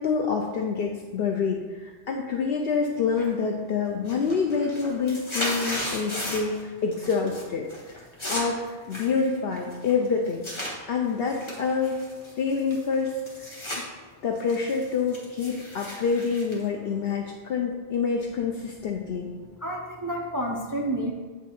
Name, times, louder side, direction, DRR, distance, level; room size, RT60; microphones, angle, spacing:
voice 1, 0.0-8.0 8.3-10.4 10.9-12.0 12.4-13.5 14.2-19.3, left 5 dB, 65° left, 1 dB, 0.8 m, -27 dB
sound 1, 3.2-3.6 3.9-6.6 6.9-7.4 7.7-10.7 11.3-13.8 14.2-17.4, left 1 dB, 25° left, 1.4 m, -35 dB
voice 2, 19.4-21.1, right 1 dB, 30° right, 0 dB, 0.4 m, -30 dB
8.4 x 3.5 x 4.2 m, 1.4 s
omnidirectional pair, 1.1 m